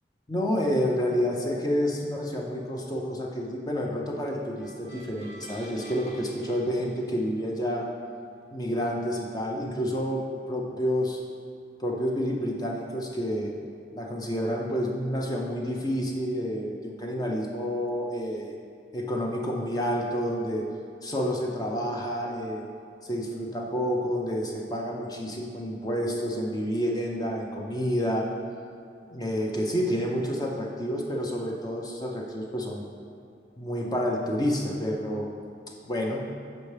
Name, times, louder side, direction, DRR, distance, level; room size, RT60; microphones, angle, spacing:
voice 1, 0.3-7.9 8.5-11.2 11.8-13.5 13.9-18.5 18.9-20.7 21.0-22.7 23.0-28.3 29.1-32.8 33.6-35.3 35.9-36.3, equal, 20° left, -1 dB, 0.5 m, -29 dB
sound 1, 4.6-7.8, right 1 dB, 55° left, 1.2 m, -48 dB
6.8 x 5.2 x 3.2 m, 2.5 s
head